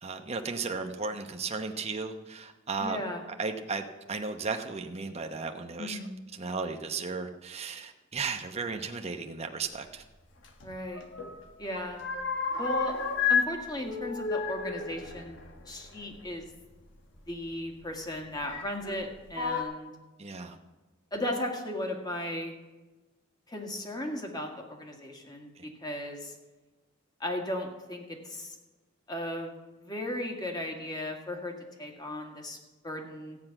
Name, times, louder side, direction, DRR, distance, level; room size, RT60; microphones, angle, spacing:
voice 1, 0.0-3.0 3.4-6.0 6.3-10.0 20.2-20.6 25.6-25.7, right 4 dB, 30° right, 4 dB, 0.9 m, -35 dB
voice 2, 2.8-3.2 5.8-6.1 10.6-11.0 11.6-12.0 12.6-13.0 13.3-15.4 15.7-16.5 17.3-19.9 21.1-22.5 23.5-26.4 27.2-28.6 29.1-32.6 32.8-33.4, left 1 dB, 20° left, 2 dB, 1.9 m, -36 dB
sound 1, 10.4-11.4 11.6-13.5 13.8-16.3 17.3-17.4 18.4-19.0 19.3-19.6, left 5 dB, 65° left, 1.4 m, -31 dB
14.5 x 9.4 x 5.9 m, 1.2 s
head